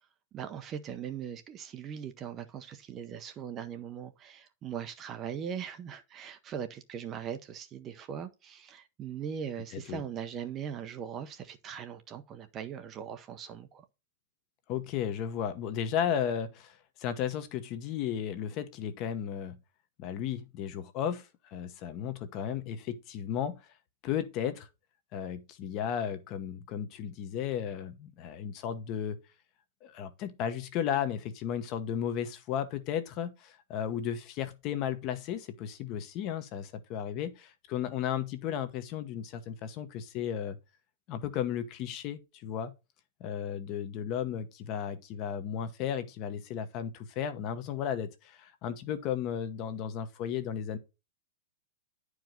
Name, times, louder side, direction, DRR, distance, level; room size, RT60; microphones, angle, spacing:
voice 1, 0.3-13.8, right 8 dB, 20° right, 0.7 m, -40 dB
voice 2, 9.7-10.0 14.7-19.6 20.0-23.6 24.0-24.7 25.1-29.2 29.8-40.6 41.1-42.7 43.2-50.8, left 9 dB, 30° left, 1.0 m, -34 dB
10.5 x 4.8 x 3.8 m
supercardioid pair, 175°, 0 cm